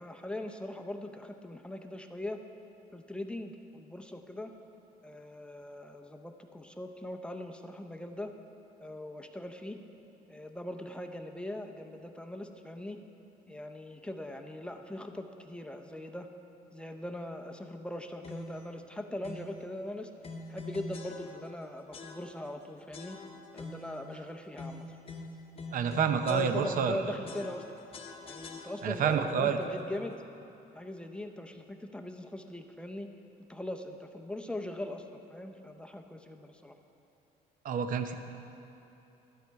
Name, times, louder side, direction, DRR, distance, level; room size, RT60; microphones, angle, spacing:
voice 1, 0.0-2.4 2.9-4.5 5.0-8.3 8.8-9.8 10.3-13.0 13.5-16.3 16.7-20.1 20.5-23.2 23.5-24.8 26.2-27.7 28.2-30.2 30.7-33.1 33.5-36.7, left 1 dB, 5° left, 4 dB, 0.6 m, -40 dB
sound 1, 18.2-18.7 19.2-19.6 20.2-21.6 21.9-22.6 22.9-24.0 24.6-27.0 27.3-29.1, left 3 dB, 35° left, 0.8 m, -45 dB
voice 2, 25.7-27.0 28.8-29.6 37.6-38.2, right 7 dB, 55° right, 8 dB, 0.7 m, -28 dB
12.0 x 8.0 x 4.6 m, 2.9 s
cardioid pair, 110°, 17 cm